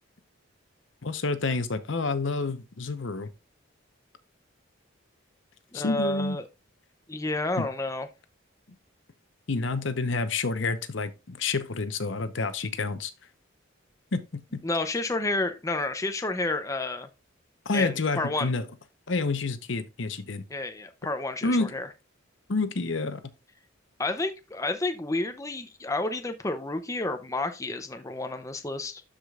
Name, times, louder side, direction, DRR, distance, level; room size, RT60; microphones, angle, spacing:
voice 1, 1.0-3.3 5.7-6.4 7.6-7.7 9.5-13.1 14.1-14.6 17.7-18.7 19.1-20.4 21.4-21.7 22.5-23.2, left 3 dB, 65° left, 0.9 m, -29 dB
voice 2, 5.7-6.5 7.1-8.1 14.6-17.1 17.7-18.5 20.5-21.9 24.0-29.0, left 2 dB, 15° left, 0.5 m, -30 dB
12.5 x 5.0 x 2.4 m
head